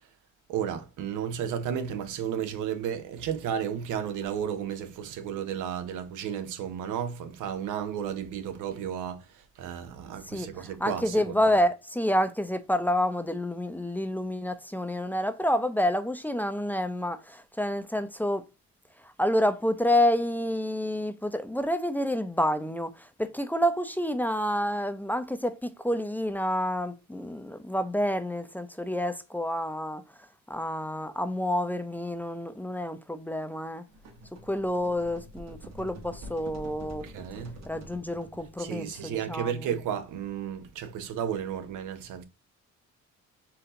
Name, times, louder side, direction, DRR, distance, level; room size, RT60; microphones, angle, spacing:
voice 1, 0.5-11.3 37.0-37.6 38.6-42.2, right 8 dB, 90° right, 0.8 m, -33 dB
voice 2, 10.2-18.4 19.0-30.0 30.5-33.8 34.5-37.1 37.7-39.7, left 1 dB, 5° left, 0.5 m, -28 dB
sound 1, 33.9-38.8, equal, 60° right, 1.3 m, -46 dB
4.3 x 2.8 x 3.8 m
cardioid pair, 90°, 30 cm